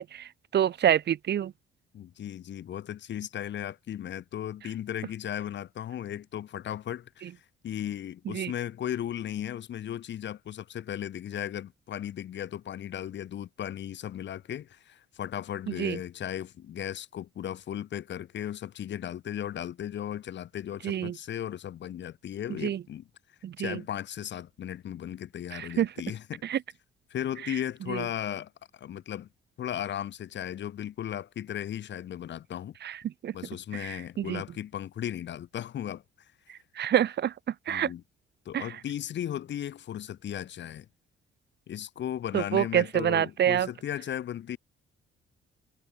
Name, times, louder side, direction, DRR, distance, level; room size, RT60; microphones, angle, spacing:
voice 1, 0.0-1.5 8.3-8.5 15.7-16.0 20.8-21.1 22.6-22.8 23.4-23.8 25.5-25.9 26.4-26.6 27.9-28.0 32.8-33.3 33.7-34.4 36.8-37.3 37.7-37.9 38.5-38.7 42.3-43.7, right 10 dB, 60° right, 1.3 m, -27 dB
voice 2, 1.9-7.3 7.6-23.1 23.6-26.4 27.1-29.3 29.6-32.7 33.3-36.0 36.5-36.6 37.7-38.0 38.4-40.9 41.7-44.6, left 10 dB, 65° left, 1.8 m, -36 dB
cardioid pair, 90°, 20 cm